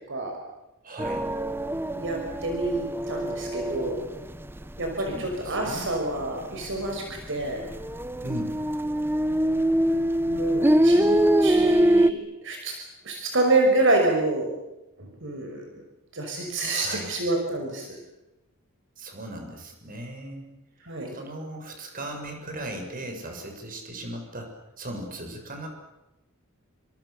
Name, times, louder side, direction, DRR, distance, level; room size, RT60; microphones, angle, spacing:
voice 1, 0.8-1.2 5.1-5.9 8.2-8.5 16.7-17.1 19.0-20.5 21.1-25.7, right 1 dB, 40° right, 4 dB, 7.1 m, -37 dB
sound 1, 1.0-4.9 5.2-5.9 6.2-6.3 6.6-12.1, right 1 dB, 10° right, 0.9 m, -23 dB
voice 2, 1.9-4.1 4.8-7.6 10.3-12.8 13.0-14.5 15.0-15.7 16.1-18.0 20.8-21.2, right 2 dB, 60° right, 2 dB, 5.8 m, -27 dB
29.5 x 26.5 x 7.0 m, 0.96 s
head